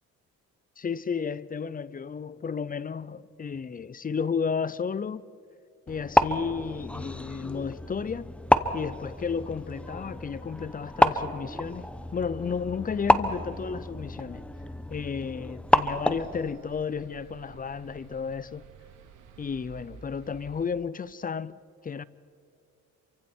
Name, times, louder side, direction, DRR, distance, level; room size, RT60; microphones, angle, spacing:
voice 1, 0.8-5.2 5.9-8.3 8.7-14.4 14.9-18.6 19.4-22.0, left 6 dB, 30° left, 0.6 m, -33 dB
sound 1, 5.9-16.4, left 1 dB, 5° left, 1.0 m, -28 dB
sound 2, 15.7-20.7, right 7 dB, 85° right, 2.4 m, -51 dB
27.5 x 24.0 x 4.6 m
cardioid pair, 90°, 30 cm